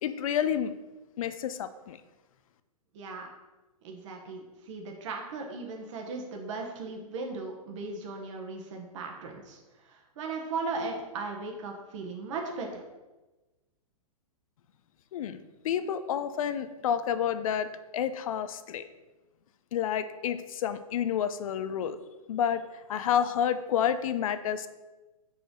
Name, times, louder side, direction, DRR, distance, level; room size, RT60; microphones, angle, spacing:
voice 1, 0.0-0.7 1.2-2.0 15.1-17.7 17.9-18.8 19.7-22.0 22.3-22.6 22.9-24.7, left 9 dB, 65° left, 12 dB, 0.5 m, -29 dB
voice 2, 2.9-3.3 3.8-9.6 9.8-12.8, right 3 dB, 55° right, 2 dB, 1.1 m, -37 dB
4.8 x 4.4 x 5.1 m, 1.1 s
hypercardioid pair, 140°, 19 cm